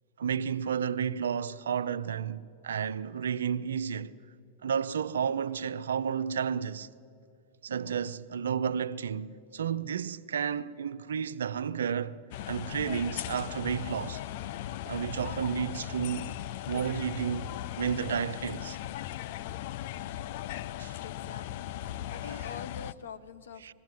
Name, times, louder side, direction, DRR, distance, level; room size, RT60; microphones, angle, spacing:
voice 1, 0.2-4.2 4.6-6.9 7.6-12.2 12.5-14.2 14.9-16.4 16.7-18.8 20.8-21.0 22.2-22.5 23.6-23.7, right 7 dB, 85° right, 0.6 m, -32 dB
sound 1, 12.3-22.9, left 13 dB, 60° left, 0.4 m, -38 dB
voice 2, 21.0-21.8 22.1-23.7, left 6 dB, 80° left, 1.1 m, -45 dB
21.0 x 15.5 x 9.3 m
hypercardioid pair, 105°, 0 cm